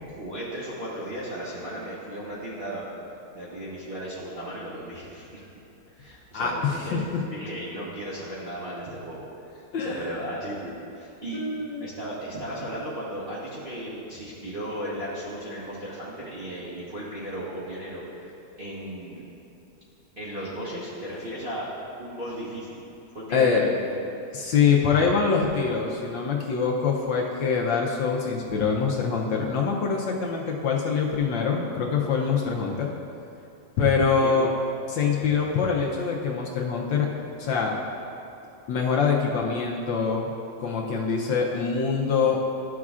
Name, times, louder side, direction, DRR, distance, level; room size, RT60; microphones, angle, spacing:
voice 1, 0.0-2.9 3.3-5.5 6.0-7.0 7.3-9.3 9.5-11.4 11.8-19.2 20.2-21.7 22.0-22.8 23.1-24.0 30.6-30.7 34.2-34.3 35.0-35.2, right 1 dB, 40° right, -9 dB, 0.8 m, -36 dB
voice 2, 6.3-7.0 9.7-10.1 11.3-11.9 23.3-23.7 24.3-32.9 33.8-34.5 34.9-37.1 37.4-37.7 38.7-40.3 40.6-42.4, left 5 dB, 70° left, -1 dB, 1.2 m, -24 dB
12.0 x 6.1 x 2.4 m, 2.8 s
omnidirectional pair, 2.4 m